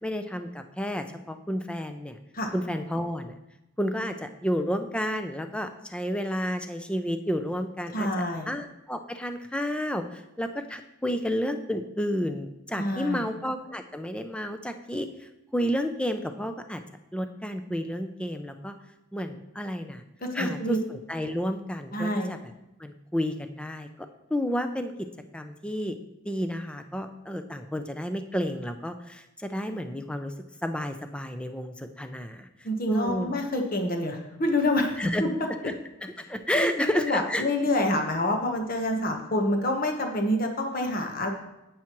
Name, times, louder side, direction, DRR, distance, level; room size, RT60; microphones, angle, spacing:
voice 1, 0.0-2.2 2.5-3.3 3.8-8.1 8.5-16.8 17.1-18.7 19.1-20.0 20.3-22.4 22.8-25.1 25.3-26.0 26.3-30.3 30.6-32.5 32.9-33.3 35.0-35.2 35.6-35.7 36.0-37.4, equal, 5° left, 7 dB, 0.4 m, -31 dB
voice 2, 7.9-8.5 12.8-13.3 20.4-20.8 21.9-22.3 32.6-35.3 36.5-41.3, left 1 dB, 45° left, 3 dB, 1.1 m, -27 dB
10.5 x 8.5 x 3.0 m, 0.95 s
head